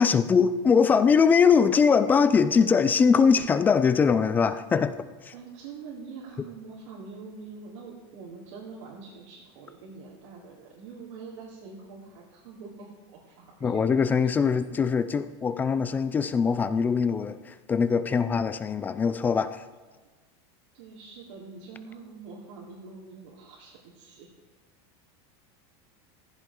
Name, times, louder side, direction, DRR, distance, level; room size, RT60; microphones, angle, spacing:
voice 1, 0.0-4.9 5.2-5.3 13.6-19.6, left 6 dB, 10° left, 0.3 m, -22 dB
voice 2, 5.3-14.1 14.4-14.6 20.7-24.3, right 4 dB, 85° right, 3.6 m, -44 dB
15.0 x 15.0 x 3.7 m
supercardioid pair, 170°, 15 cm